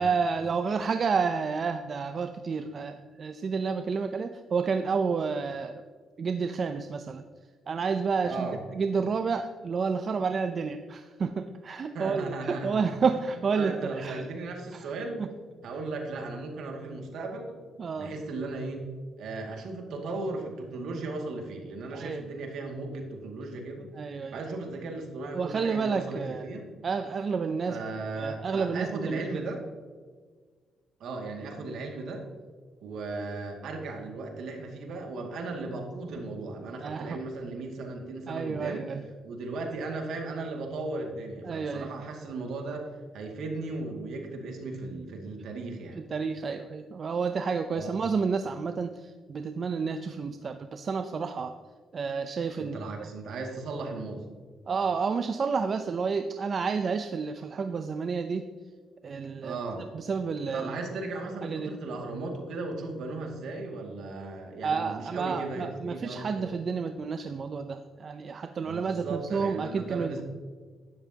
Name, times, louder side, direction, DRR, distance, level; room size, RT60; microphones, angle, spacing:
voice 1, 0.0-5.8 6.2-7.2 7.7-14.2 15.2-15.3 17.8-18.1 21.9-22.2 24.0-24.4 25.4-26.4 26.8-27.8 28.2-29.4 36.8-37.2 38.3-39.0 41.4-41.9 46.0-51.5 51.9-53.1 54.7-58.5 59.0-59.6 59.9-60.7 61.4-61.7 64.6-70.2, right 5 dB, 45° right, 8 dB, 0.6 m, -30 dB
voice 2, 8.2-8.6 11.9-12.8 13.5-15.2 15.6-17.6 17.9-18.9 19.2-23.9 24.3-26.7 27.7-29.6 31.0-32.3 32.8-38.9 39.2-46.0 47.7-48.0 52.5-54.2 59.4-59.9 60.5-66.5 68.6-70.2, right 3 dB, 75° right, 2 dB, 2.2 m, -36 dB
12.0 x 10.5 x 2.9 m, 1.5 s
cardioid pair, 90°, 0 cm